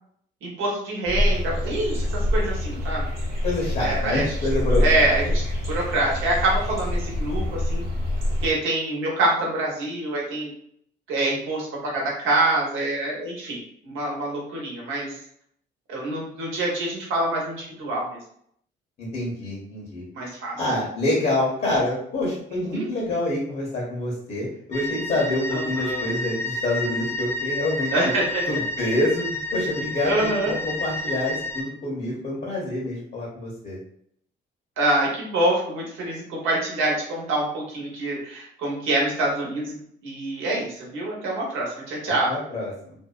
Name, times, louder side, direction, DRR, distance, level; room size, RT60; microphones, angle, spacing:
voice 1, 0.4-3.0 3.8-4.2 4.8-5.3 5.7-7.8 8.4-10.5 11.1-13.6 13.8-15.1 15.9-18.2 20.1-20.6 22.5-22.9 25.5-26.1 27.9-28.4 30.0-30.5 34.8-39.8 40.0-42.3, right 2 dB, 90° right, -2 dB, 1.0 m, -25 dB
sound 1, 1.0-8.5, left 1 dB, 50° right, 0.9 m, -25 dB
voice 2, 3.4-5.0 19.0-20.0 20.6-28.1 28.5-30.3 30.6-33.8 42.3-42.9, left 1 dB, 50° left, -4 dB, 0.9 m, -27 dB
sound 2, 24.7-31.6, left 1 dB, 15° left, 0.5 m, -30 dB
2.6 x 2.1 x 2.3 m, 0.66 s
cardioid pair, 90°, 20 cm